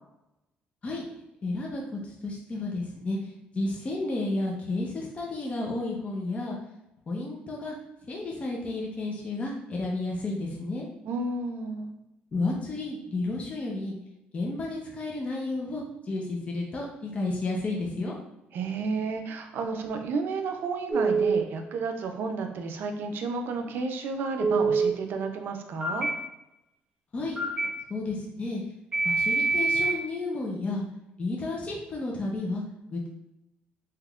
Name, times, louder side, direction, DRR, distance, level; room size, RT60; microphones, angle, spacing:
voice 1, 1.4-3.2 3.5-6.6 7.1-7.7 8.1-10.9 12.3-14.0 14.3-18.1 27.1-27.4 27.9-28.6 29.0-30.8 31.2-32.6 32.9-33.1, left 2 dB, 35° left, -1 dB, 0.6 m, -32 dB
voice 2, 11.1-11.9 18.5-26.1, right 4 dB, 65° right, 5 dB, 0.5 m, -32 dB
Telephone, 20.9-21.4 24.4-24.9 25.8-26.1 27.4-27.7 28.9-29.9, right 4 dB, 25° right, 0.9 m, -24 dB
3.4 x 2.8 x 2.4 m, 0.88 s
cardioid pair, 110°, 4 cm